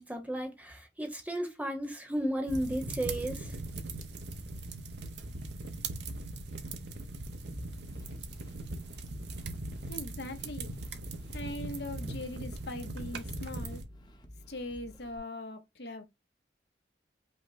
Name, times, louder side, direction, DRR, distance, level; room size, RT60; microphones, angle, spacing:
voice 1, 0.0-3.5, right 1 dB, 10° right, 1.0 m, -34 dB
sound 1, 2.5-13.8, right 2 dB, 75° right, 1.0 m, -40 dB
sound 2, 7.7-15.2, equal, 25° left, 1.0 m, -52 dB
voice 2, 9.6-10.7 11.3-13.8 14.5-16.0, left 2 dB, 65° left, 1.1 m, -41 dB
5.5 x 2.3 x 4.2 m
head